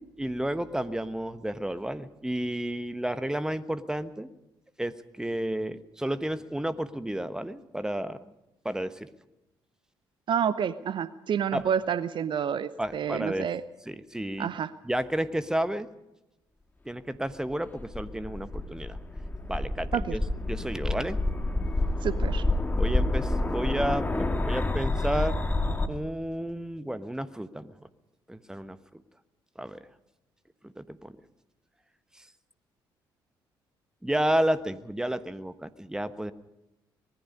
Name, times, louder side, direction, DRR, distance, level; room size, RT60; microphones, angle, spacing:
voice 1, 0.2-4.3 4.8-8.2 8.6-9.1 11.5-11.7 12.8-13.5 13.8-14.5 14.8-15.9 16.9-19.0 19.5-20.2 20.5-21.2 22.8-25.4 25.9-27.7 28.3-28.8 29.6-29.8 30.6-31.2 32.2-32.3 34.0-36.3, right 1 dB, 5° right, 13 dB, 1.2 m, -31 dB
voice 2, 10.3-13.6 14.4-14.7 19.9-20.2 22.0-22.4, right 8 dB, 45° right, 16 dB, 0.8 m, -29 dB
sound 1, 17.5-25.9, left 2 dB, 15° left, 1.9 m, -28 dB
25.5 x 20.0 x 5.3 m, 0.95 s
figure-of-eight pair, 45°, 12 cm